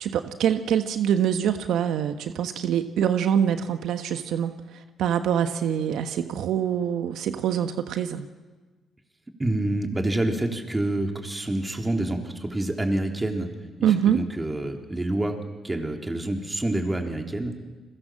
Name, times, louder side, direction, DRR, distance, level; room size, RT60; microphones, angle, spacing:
voice 1, 0.0-8.3 13.8-14.2, right 9 dB, 80° right, 8 dB, 1.3 m, -25 dB
voice 2, 9.4-13.5 13.8-15.4 15.6-17.6, right 1 dB, 15° right, 3 dB, 3.8 m, -27 dB
30.0 x 22.5 x 7.6 m, 1.3 s
cardioid pair, 90°, 0 cm